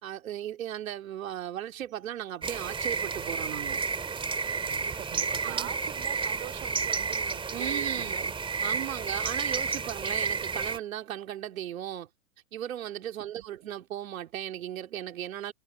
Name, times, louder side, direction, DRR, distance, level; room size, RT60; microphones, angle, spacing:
voice 1, 0.0-3.8 5.4-5.7 7.5-8.3 8.6-12.1 12.5-15.5, right 11 dB, 65° right, 3.4 m, -36 dB
sound 1, 2.4-10.8, right 5 dB, 10° right, 2.8 m, -31 dB
voice 2, 4.6-8.3 8.6-8.8 13.2-13.4, right 19 dB, 50° right, 4.8 m, -44 dB
hypercardioid pair, 125°, 43 cm